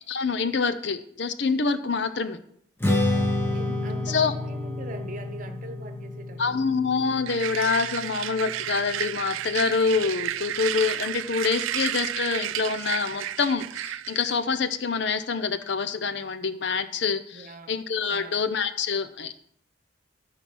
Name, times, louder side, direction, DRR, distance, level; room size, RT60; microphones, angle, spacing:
voice 1, 0.1-2.4 4.1-4.3 6.4-19.4, left 5 dB, 60° left, 11 dB, 0.6 m, -26 dB
Strum, 2.8-9.1, left 1 dB, 10° left, 1.0 m, -29 dB
voice 2, 3.5-6.7 17.3-17.8 18.1-18.4, right 2 dB, 40° right, 7 dB, 1.1 m, -41 dB
sound 1, 7.3-14.4, right 12 dB, 80° right, 0.3 m, -32 dB
13.5 x 4.5 x 5.4 m, 0.67 s
head